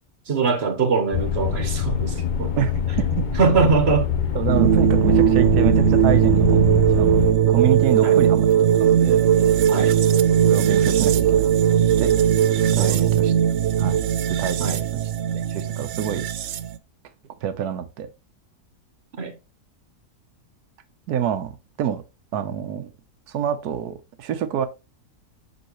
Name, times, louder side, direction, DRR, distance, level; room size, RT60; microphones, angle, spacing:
voice 1, 0.3-2.5 3.4-4.1 8.0-8.2 9.7-10.0 12.8-13.0 14.6-14.8 19.2-19.3, right 5 dB, 50° right, 1.2 m, -22 dB
sound 1, 1.1-7.3, left 7 dB, 50° left, 0.6 m, -24 dB
voice 2, 2.6-3.3 4.3-7.2 7.5-8.5 8.8-9.2 9.5-9.7 10.5-11.5 12.0-12.1 12.7-13.3 13.8-15.0 15.3-16.2 17.4-18.1 21.1-22.0 22.3-22.9 23.3-24.7, right 9 dB, 85° right, 1.3 m, -27 dB
sound 2, 4.5-16.8, right 10 dB, 70° right, 0.7 m, -19 dB
6.3 x 5.4 x 3.0 m
omnidirectional pair, 1.6 m